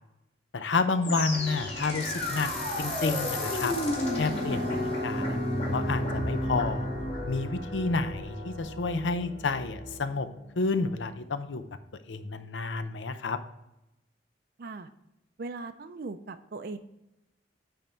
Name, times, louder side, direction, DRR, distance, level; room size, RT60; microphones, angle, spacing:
voice 1, 0.5-2.5 2.8-3.7 4.2-5.4 5.7-6.9 7.3-10.3 10.6-11.6 12.1-13.4, left 3 dB, 85° left, 11 dB, 0.6 m, -30 dB
sound 1, 1.0-10.2, left 1 dB, 35° left, 2.0 m, -32 dB
voice 2, 14.6-14.9 15.4-16.8, right 3 dB, 55° right, 9 dB, 0.5 m, -39 dB
9.2 x 3.5 x 4.3 m, 0.89 s
head